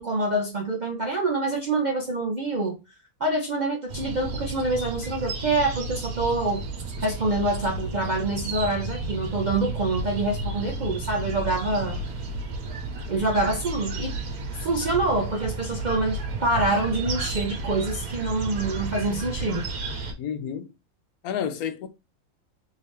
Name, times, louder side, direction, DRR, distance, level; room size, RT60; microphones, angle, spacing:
voice 1, 0.0-2.8 3.2-6.7 7.0-12.0 13.1-14.1 14.5-19.7, right 2 dB, 50° right, 0.5 m, -26 dB
sound 1, 3.9-20.1, right 3 dB, 85° right, 1.4 m, -32 dB
voice 2, 20.2-20.7 21.2-21.9, left 8 dB, 80° left, 1.0 m, -30 dB
3.7 x 2.8 x 3.2 m
omnidirectional pair, 1.6 m